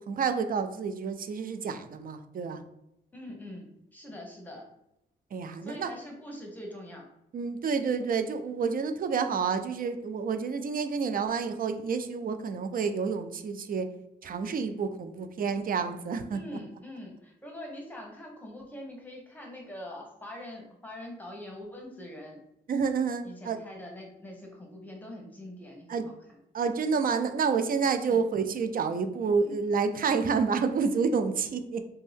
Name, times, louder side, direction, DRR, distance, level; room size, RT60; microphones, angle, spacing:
voice 1, 0.1-2.6 5.3-5.9 7.3-13.9 14.2-16.4 22.7-23.6 25.9-26.1 26.5-31.8, right 5 dB, 50° right, 9 dB, 0.4 m, -29 dB
voice 2, 3.1-4.7 5.6-7.1 16.3-22.4 23.2-26.1 28.1-28.2 29.2-29.5, left 1 dB, 10° left, 0 dB, 1.0 m, -43 dB
2.6 x 2.2 x 3.3 m, 0.83 s
supercardioid pair, 55°, 20 cm